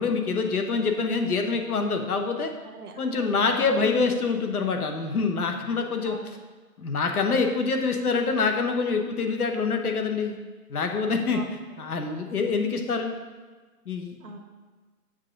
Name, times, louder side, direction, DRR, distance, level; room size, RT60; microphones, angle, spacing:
voice 1, 0.0-2.5 3.0-6.2 6.8-10.4 10.7-11.4 11.8-13.1 13.9-14.2, left 4 dB, 75° left, 4 dB, 0.9 m, -25 dB
voice 2, 2.6-3.8 6.0-6.3 11.3-11.5 14.2-14.4, right 2 dB, 75° right, 4 dB, 1.1 m, -42 dB
7.3 x 2.5 x 5.7 m, 1.3 s
figure-of-eight pair, 135°, 45 cm